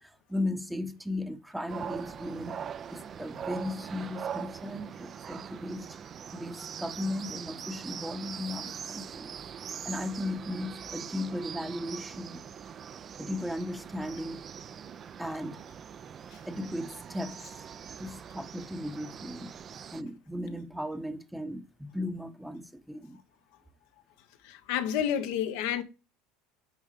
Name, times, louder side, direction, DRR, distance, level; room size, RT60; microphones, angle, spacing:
voice 1, 0.0-2.6 2.9-6.0 6.3-9.3 9.8-12.4 13.2-14.5 15.2-15.6 16.5-17.4 18.0-19.5 19.9-23.2, left 1 dB, 5° right, 0.9 m, -36 dB
sound 1, 1.7-20.0, right 8 dB, 35° right, 0.5 m, -42 dB
voice 2, 24.4-25.8, left 9 dB, 75° left, 1.1 m, -29 dB
9.1 x 3.7 x 4.8 m
supercardioid pair, 100°, 0 cm